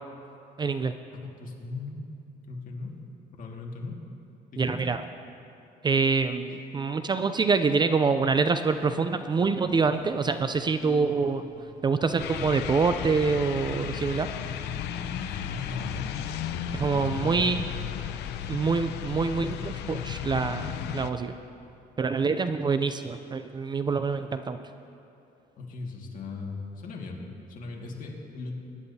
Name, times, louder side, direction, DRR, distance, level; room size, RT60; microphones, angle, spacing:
voice 1, 0.6-0.9 4.6-5.0 5.8-11.4 11.8-14.3 16.7-17.6 18.5-21.3 22.0-24.6, right 4 dB, 25° right, 10 dB, 0.4 m, -26 dB
voice 2, 1.1-2.0 2.5-2.9 3.3-4.0 4.5-4.8 15.3-16.0 16.9-17.5 25.6-28.6, left 3 dB, 55° left, 0 dB, 2.0 m, -38 dB
sound 1, 9.6-16.8, right 2 dB, 45° right, 1.7 m, -48 dB
sound 2, 12.2-21.1, left 9 dB, 80° left, 0.7 m, -34 dB
23.5 x 10.5 x 2.8 m, 2.7 s
cardioid pair, 110°, 17 cm